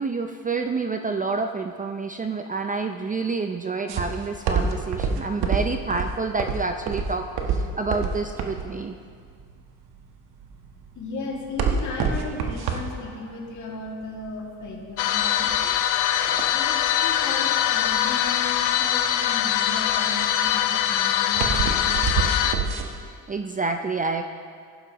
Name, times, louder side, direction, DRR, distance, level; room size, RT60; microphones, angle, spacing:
voice 1, 0.0-7.2 7.5-8.9 23.3-24.2, right 4 dB, 20° right, 5 dB, 0.5 m, -28 dB
sound 1, 3.9-22.9, right 5 dB, 70° right, 1.4 m, -28 dB
voice 2, 11.0-15.8 16.5-22.1, left 3 dB, 50° left, -1 dB, 2.4 m, -36 dB
sound 2, 15.0-22.5, left 11 dB, 90° left, 0.7 m, -23 dB
15.5 x 11.0 x 3.0 m, 2.1 s
cardioid pair, 100°, 39 cm